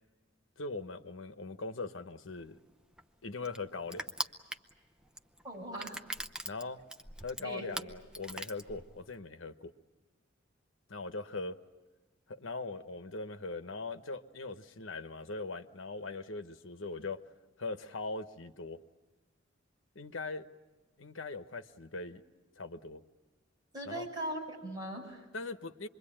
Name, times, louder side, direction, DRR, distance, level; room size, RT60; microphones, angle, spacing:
voice 1, 0.6-2.6 3.2-4.1 6.4-6.8 7.2-9.7 10.9-11.6 12.3-17.2 17.6-18.8 19.9-20.5 21.0-22.2 22.6-23.0 23.8-24.1 25.3-25.9, left 3 dB, 80° left, 9 dB, 1.1 m, -40 dB
Crushing, 2.4-9.2, right 1 dB, 5° right, 0.8 m, -42 dB
voice 2, 5.4-6.0 7.4-7.7 23.7-25.3, right 1 dB, 20° right, -2 dB, 6.8 m, -40 dB
26.5 x 22.5 x 8.8 m, 1.3 s
head